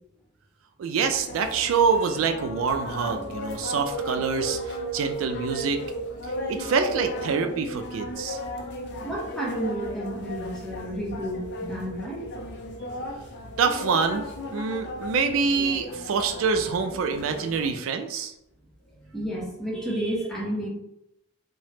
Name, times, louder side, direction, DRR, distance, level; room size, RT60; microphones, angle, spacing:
voice 1, 0.8-5.8 6.5-8.4 13.6-14.3 14.5-18.3, right 5 dB, 75° right, 6 dB, 0.3 m, -26 dB
sound 1, 1.0-17.7, equal, 60° left, 0.4 m, -35 dB
voice 2, 9.0-12.3 19.0-20.7, equal, 5° left, -4 dB, 0.7 m, -31 dB
3.2 x 2.0 x 2.8 m, 0.82 s
head